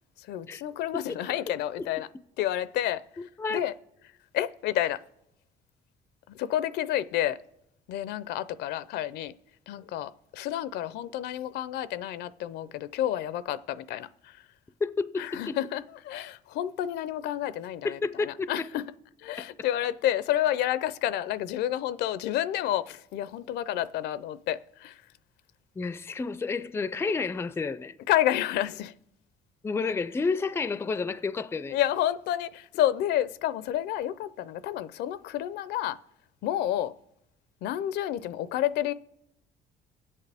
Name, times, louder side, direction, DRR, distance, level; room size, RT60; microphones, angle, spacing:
voice 1, 0.2-2.1 2.4-3.0 3.5-3.7 4.3-5.0 6.3-7.4 7.9-9.3 9.7-14.4 15.2-18.8 19.2-25.0 28.1-28.9 31.7-36.0 36.4-36.9 37.6-38.9, left 12 dB, 80° left, 0.5 m, -30 dB
voice 2, 14.8-15.6 17.8-18.7 25.8-28.0 29.6-31.8, left 4 dB, 15° left, 0.4 m, -30 dB
22.0 x 8.3 x 3.4 m
cardioid pair, 110°, 17 cm